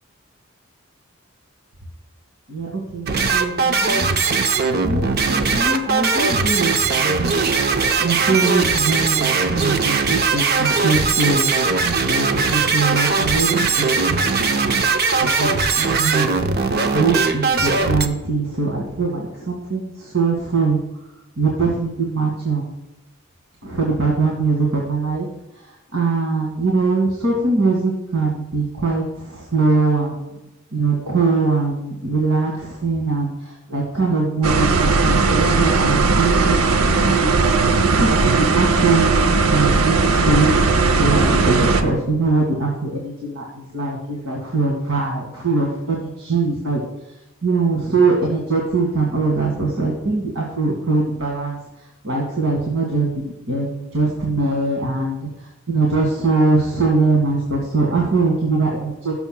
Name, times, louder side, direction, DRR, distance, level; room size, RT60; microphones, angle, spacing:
voice 1, 2.5-4.1 4.8-7.3 8.0-11.5 12.0-14.8 15.2-16.3 16.9-20.8 21.4-22.7 23.6-25.3 25.6-37.3 38.0-39.1 39.5-46.8 47.4-51.6 52.0-55.3 55.7-59.1, right 3 dB, 65° right, -2 dB, 2.0 m, -22 dB
sound 1, 3.1-18.1, right 4 dB, 45° right, 0.7 m, -19 dB
sound 2, 34.4-41.8, right 4 dB, 90° right, 0.7 m, -17 dB
18.5 x 7.0 x 2.3 m, 0.93 s
head